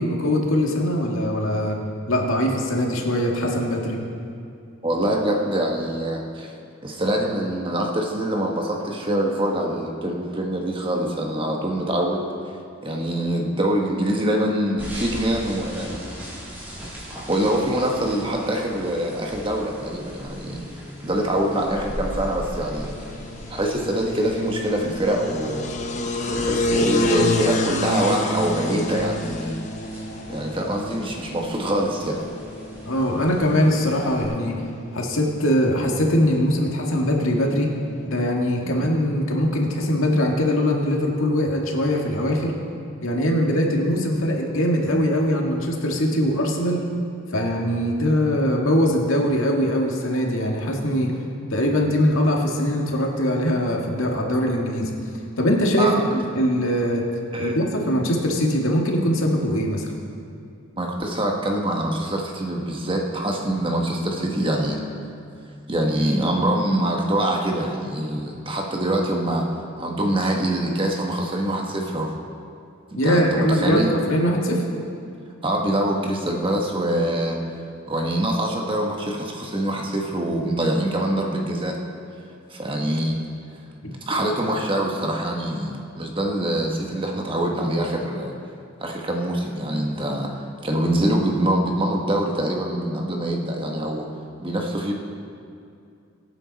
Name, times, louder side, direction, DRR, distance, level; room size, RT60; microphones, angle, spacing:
voice 1, 0.0-1.8 2.1-4.0 32.8-34.5 34.9-37.7 38.1-42.5 43.0-46.8 47.3-51.1 51.5-54.9 55.4-57.0 57.4-59.9 73.0-74.7, equal, 75° left, 0 dB, 2.0 m, -22 dB
voice 2, 4.8-6.5 6.8-12.3 12.8-15.9 17.3-20.6 21.0-23.0 23.5-25.7 26.3-29.6 30.3-32.2 38.6-38.8 55.8-56.1 57.3-57.5 60.8-64.8 65.7-69.5 69.8-72.1 73.0-74.1 75.4-77.4 77.9-81.8 82.5-83.3 84.1-88.3 88.8-90.3 90.6-94.0 94.4-94.9, right 1 dB, 25° right, 0 dB, 1.4 m, -24 dB
sound 1, 14.8-34.2, equal, 10° right, 3.4 m, -39 dB
sound 2, 20.0-38.1, left 1 dB, 35° left, 1.0 m, -30 dB
23.5 x 9.1 x 4.2 m, 2.4 s
head